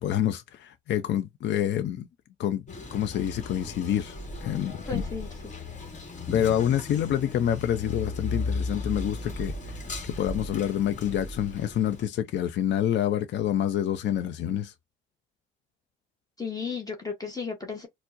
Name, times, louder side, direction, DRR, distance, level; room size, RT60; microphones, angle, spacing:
voice 1, 0.0-2.1 2.4-2.6 2.9-4.2 4.4-5.0 6.3-9.5 10.0-14.7, left 10 dB, 65° left, 0.5 m, -27 dB
Male speech man speaking, 2.7-12.0, left 3 dB, 40° left, 1.3 m, -36 dB
voice 2, 4.9-5.6 16.4-17.9, left 5 dB, 20° left, 0.8 m, -34 dB
4.3 x 2.0 x 2.5 m
cardioid pair, 90°, 20 cm